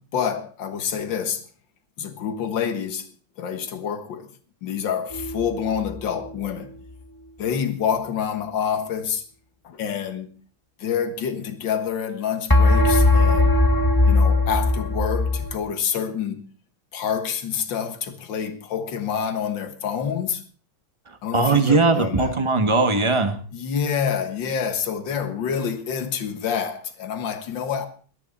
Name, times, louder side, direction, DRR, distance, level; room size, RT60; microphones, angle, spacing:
voice 1, 0.0-1.5 2.0-3.1 3.4-4.3 4.6-6.7 7.4-9.2 9.6-10.3 10.8-13.6 14.1-16.4 16.9-20.4 21.2-22.4 23.5-27.9, left 7 dB, 65° left, 2.1 m, -27 dB
sound 1, 5.1-6.0 12.5-15.5, left 2 dB, 15° left, 1.0 m, -19 dB
voice 2, 21.3-23.4, right 3 dB, 15° right, 1.2 m, -19 dB
18.0 x 12.5 x 4.2 m
omnidirectional pair, 2.2 m